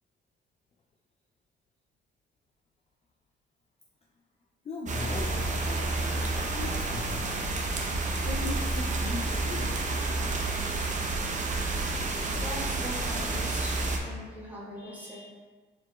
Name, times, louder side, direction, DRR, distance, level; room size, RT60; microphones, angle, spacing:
voice 1, 4.6-6.0 6.5-7.3 8.2-9.7, left 3 dB, 30° left, -1 dB, 0.4 m, -38 dB
sound 1, 4.9-14.0, right 2 dB, 40° right, 0.6 m, -30 dB
voice 2, 12.3-15.3, right 1 dB, 10° right, -7 dB, 1.4 m, -41 dB
4.4 x 3.9 x 2.3 m, 1.4 s
cardioid pair, 90°, 20 cm